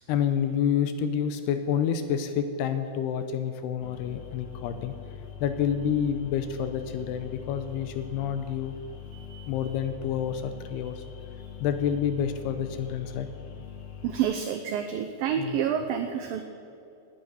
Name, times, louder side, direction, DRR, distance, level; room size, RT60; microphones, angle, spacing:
voice 1, 0.1-4.9 5.4-8.8 9.5-11.0 11.6-13.3 15.4-15.6, left 8 dB, 85° left, 9 dB, 2.6 m, -28 dB
sound 1, 3.8-14.2, left 9 dB, 65° left, 2.6 m, -43 dB
voice 2, 9.1-9.5 14.0-16.4, right 8 dB, 90° right, 6 dB, 2.0 m, -29 dB
18.5 x 9.3 x 6.3 m, 2.6 s
omnidirectional pair, 5.0 m